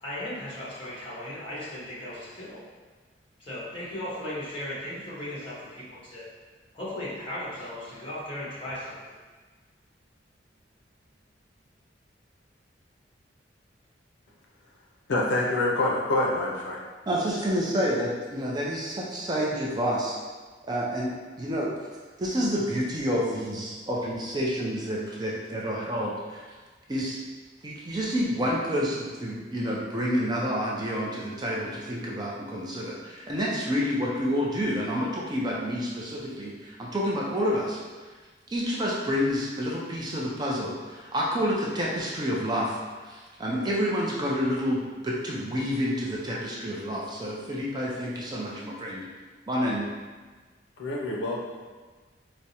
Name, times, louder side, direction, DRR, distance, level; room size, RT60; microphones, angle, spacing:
voice 1, 0.0-2.6 3.4-6.2 6.7-9.0, left 1 dB, 30° left, -8 dB, 1.2 m, -36 dB
voice 2, 15.1-16.8 50.8-51.4, left 2 dB, 75° left, -2 dB, 0.5 m, -26 dB
voice 3, 17.1-20.1 20.6-21.1 21.4-21.7 22.2-26.6 26.9-27.2 27.6-37.8 38.5-42.8 43.0-49.0 49.5-49.9, equal, 20° right, -4 dB, 0.4 m, -29 dB
4.6 x 2.0 x 2.8 m, 1.4 s
head